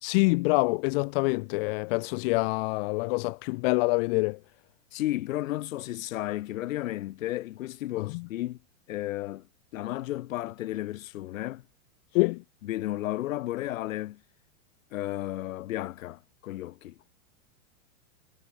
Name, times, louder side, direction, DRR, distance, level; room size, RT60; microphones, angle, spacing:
voice 1, 0.0-4.4 8.1-8.2 12.1-12.4, left 28 dB, 45° left, 1.2 m, -26 dB
voice 2, 4.9-8.6 8.9-9.5 9.7-11.6 12.6-14.2 14.9-17.0, left 15 dB, 65° left, 5.5 m, -33 dB
supercardioid pair, 145°, 43 cm